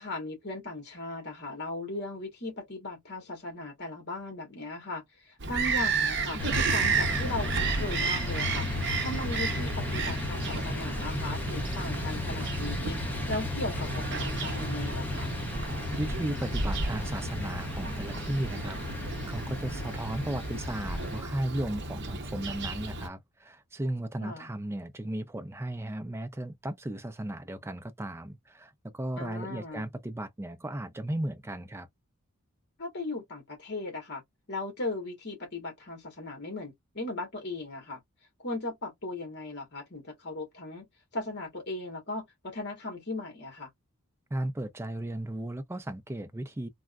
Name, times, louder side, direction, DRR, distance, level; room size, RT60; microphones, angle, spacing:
voice 1, 0.0-6.4 6.7-8.7 9.0-15.3 24.2-24.5 29.2-29.9 32.8-34.2 34.5-38.0 38.4-40.8 41.1-43.7, left 2 dB, 50° left, 1.4 m, -37 dB
Bird vocalization bird call bird song, 5.4-23.1, right 4 dB, 55° right, 0.8 m, -33 dB
sound 1, 6.4-21.2, left 2 dB, 10° left, 0.8 m, -34 dB
voice 2, 16.0-31.9 44.3-46.7, right 1 dB, 10° right, 0.4 m, -35 dB
3.4 x 2.1 x 2.4 m
head